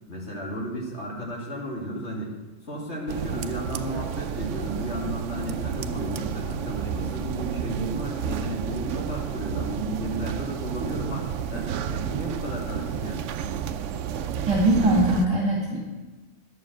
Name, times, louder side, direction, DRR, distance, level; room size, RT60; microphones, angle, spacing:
voice 1, 0.1-2.3 2.6-13.2, right 1 dB, 70° left, -2 dB, 2.7 m, -33 dB
sound 1, 3.1-15.3, right 8 dB, 80° right, 0.9 m, -31 dB
voice 2, 14.5-15.8, right 1 dB, 25° right, -4 dB, 2.1 m, -21 dB
10.5 x 7.3 x 7.8 m, 1.2 s
omnidirectional pair, 1.2 m